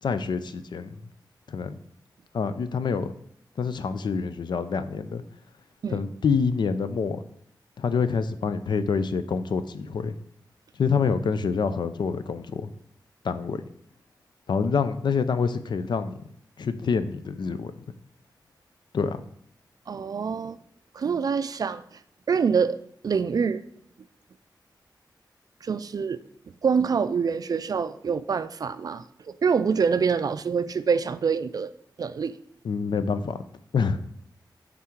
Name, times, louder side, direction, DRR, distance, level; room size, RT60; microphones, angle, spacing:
voice 1, 0.0-1.0 1.5-1.8 2.3-3.1 3.6-5.2 5.9-7.2 7.8-10.2 10.8-12.7 13.2-13.6 14.5-16.2 16.6-17.7 18.9-19.2 32.6-33.4 33.7-34.0, left 5 dB, 75° left, 0.5 m, -26 dB
voice 2, 19.9-20.6 20.9-21.8 22.3-23.6 25.6-26.2 26.6-31.7 32.0-32.3, right 6 dB, 55° right, 0.3 m, -25 dB
9.3 x 3.7 x 4.5 m
wide cardioid pair, 150°, 8 cm